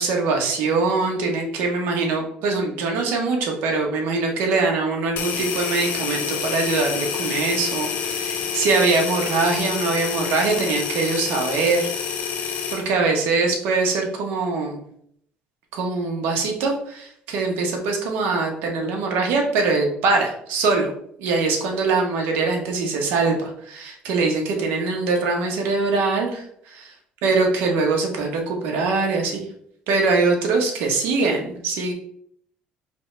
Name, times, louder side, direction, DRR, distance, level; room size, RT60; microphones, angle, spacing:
voice 1, 0.0-11.9 12.7-14.8 15.7-20.9 21.2-26.7 27.2-29.4 29.9-31.9, right 3 dB, 85° right, 2 dB, 1.1 m, -22 dB
sound 1, 5.2-12.9, left 7 dB, 65° left, 0.7 m, -28 dB
4.6 x 3.4 x 3.3 m, 0.67 s
cardioid pair, 140°, 3 cm